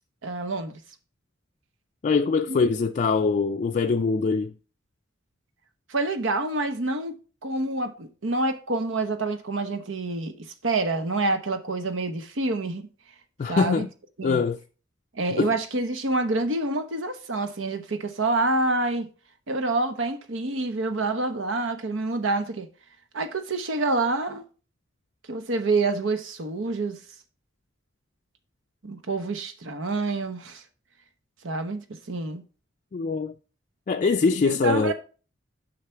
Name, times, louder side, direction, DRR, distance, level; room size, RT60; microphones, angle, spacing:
voice 1, 0.2-0.7 2.5-2.7 5.9-7.1 7.4-12.9 13.5-13.9 14.2-14.4 15.1-19.1 19.5-22.7 23.1-24.4 25.3-27.0 28.8-30.6 31.4-32.4 34.4-34.9, right 2 dB, 90° right, 1.0 m, -27 dB
voice 2, 2.0-4.5 13.4-13.9 14.2-14.6 15.4-15.5 32.9-33.3 33.9-34.9, left 4 dB, 40° left, 0.3 m, -23 dB
6.7 x 5.7 x 4.5 m
head